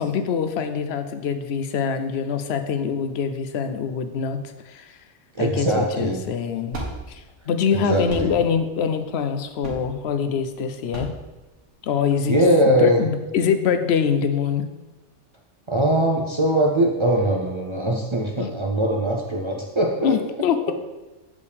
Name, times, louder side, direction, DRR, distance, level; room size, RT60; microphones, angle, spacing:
voice 1, 0.0-4.4 4.6-5.0 5.4-6.8 7.1-11.1 11.8-12.3 12.7-14.6 18.4-18.5 20.0-20.7, left 7 dB, 65° left, 9 dB, 0.7 m, -24 dB
voice 2, 5.3-6.2 7.7-8.3 12.3-13.0 15.7-20.2, right 1 dB, 40° right, 0 dB, 0.4 m, -21 dB
sound 1, 6.2-12.1, right 2 dB, 75° right, 1.5 m, -37 dB
6.5 x 5.2 x 3.4 m, 1.1 s
omnidirectional pair, 1.3 m